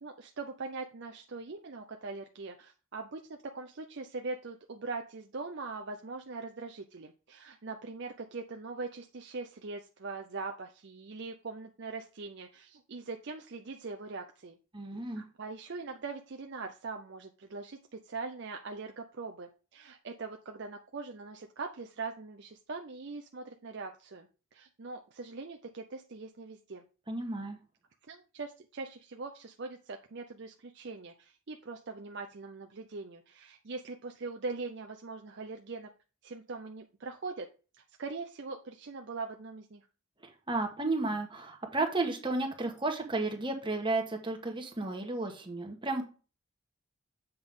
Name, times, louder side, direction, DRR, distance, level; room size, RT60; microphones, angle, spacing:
voice 1, 0.0-3.2 3.5-14.5 15.1-26.8 28.1-35.9 36.2-37.5 38.0-39.8, right 3 dB, 50° right, 4 dB, 0.6 m, -42 dB
voice 2, 14.7-15.2 27.1-27.6 40.2-46.1, right 2 dB, 20° right, 2 dB, 1.5 m, -33 dB
7.8 x 5.9 x 3.7 m, 0.34 s
head